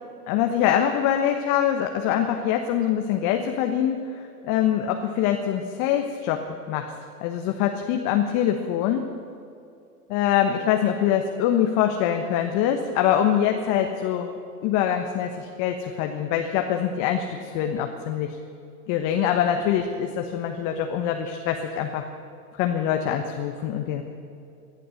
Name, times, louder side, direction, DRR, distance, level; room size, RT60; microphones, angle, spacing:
voice 1, 0.3-6.9 7.2-9.0 10.1-18.4 18.9-22.0 22.5-24.0, left 9 dB, 40° left, 4 dB, 1.3 m, -24 dB
18.5 x 11.5 x 6.6 m, 2.5 s
hypercardioid pair, 105°, 46 cm